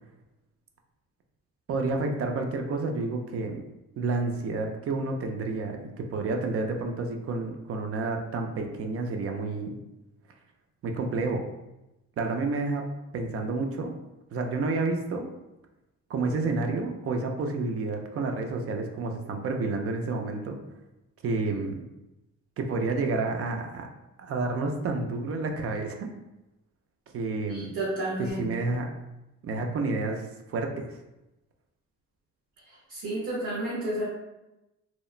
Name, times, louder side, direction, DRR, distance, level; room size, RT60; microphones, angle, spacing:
voice 1, 1.7-3.6 4.0-9.8 10.8-11.4 12.2-12.9 13.1-13.9 14.3-15.3 16.1-20.6 21.2-21.8 22.6-23.9 24.2-26.1 27.1-27.7 28.4-28.9 29.4-31.0, right 3 dB, 50° right, 4 dB, 0.4 m, -30 dB
voice 2, 27.5-28.5 32.7-34.0, right 1 dB, 85° right, -8 dB, 0.8 m, -31 dB
2.9 x 2.0 x 2.3 m, 0.96 s
cardioid pair, 90°, 30 cm